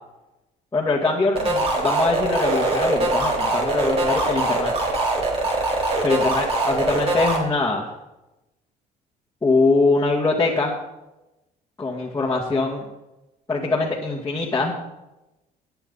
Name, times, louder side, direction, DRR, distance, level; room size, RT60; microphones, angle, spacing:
voice 1, 0.7-4.7 6.0-7.9 9.4-10.7 11.8-12.8 13.5-14.7, left 3 dB, 15° left, -6 dB, 2.2 m, -22 dB
sound 1, 1.4-7.4, right 2 dB, 35° right, 4.1 m, -22 dB
19.0 x 9.1 x 4.1 m, 0.98 s
cardioid pair, 110°, 17 cm